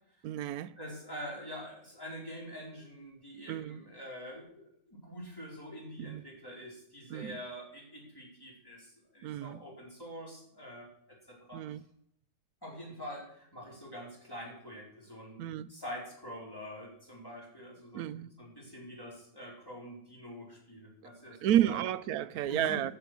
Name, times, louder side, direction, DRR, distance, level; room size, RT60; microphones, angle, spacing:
voice 1, 0.2-0.7 3.5-3.8 6.0-6.2 7.1-7.4 9.2-9.6 11.5-11.8 15.4-15.7 17.9-18.3 21.4-22.9, right 11 dB, 75° right, 1.1 m, -31 dB
voice 2, 0.8-10.9 11.3-11.6 12.6-21.8 22.3-22.8, equal, 15° left, 4.4 m, -45 dB
13.5 x 7.0 x 6.2 m
omnidirectional pair, 1.6 m